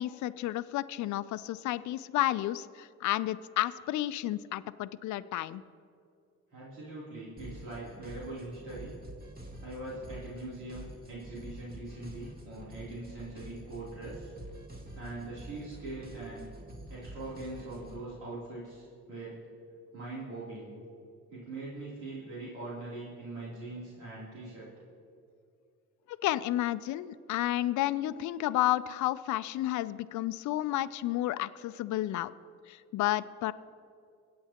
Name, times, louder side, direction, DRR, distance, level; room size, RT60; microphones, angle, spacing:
voice 1, 0.0-5.6 26.2-32.3 32.7-33.5, left 14 dB, 70° left, 14 dB, 0.5 m, -31 dB
voice 2, 6.5-9.0 9.6-14.3 14.9-16.5 16.9-19.4 19.9-20.8 21.3-24.7, right 2 dB, 90° right, -8 dB, 3.1 m, -42 dB
sound 1, 7.4-18.0, right 1 dB, 30° right, 1.6 m, -47 dB
23.5 x 8.6 x 2.9 m, 2.4 s
cardioid pair, 90°, 30 cm